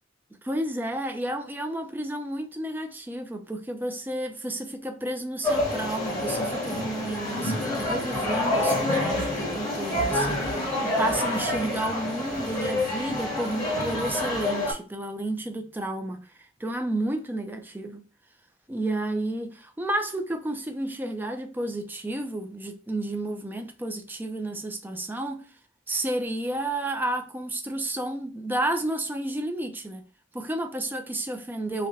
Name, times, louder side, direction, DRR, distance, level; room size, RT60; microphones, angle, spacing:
voice 1, 0.4-18.0 18.7-25.4 25.9-30.0 30.3-31.9, right 1 dB, 10° right, 0.4 m, -31 dB
sound 1, 5.4-14.7, left 1 dB, 20° left, 1.4 m, -27 dB
5.3 x 2.1 x 2.5 m
head